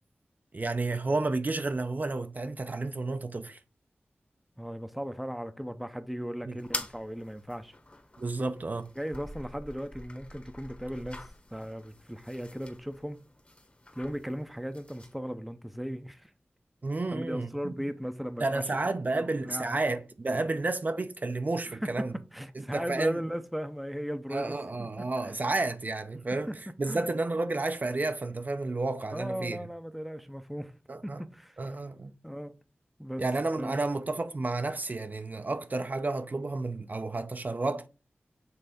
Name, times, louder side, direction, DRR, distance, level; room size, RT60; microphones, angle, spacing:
voice 1, 0.5-3.6 6.4-6.6 8.2-8.9 16.8-17.7 18.4-22.1 22.6-23.2 24.3-26.5 26.8-29.6 30.9-31.2 31.6-32.1 33.2-37.9, right 2 dB, 45° right, 0.6 m, -31 dB
voice 2, 4.6-7.7 9.0-13.2 14.0-16.3 17.1-18.6 19.1-19.7 21.7-24.6 25.0-25.4 26.5-26.6 26.9-27.1 29.1-30.7 31.0-31.6 32.2-32.5 33.0-33.2 33.6-33.8, equal, ahead, 0.7 m, -37 dB
sound 1, 6.6-15.1, left 2 dB, 30° left, 1.3 m, -45 dB
6.8 x 3.4 x 4.9 m
wide cardioid pair, 70°, 4 cm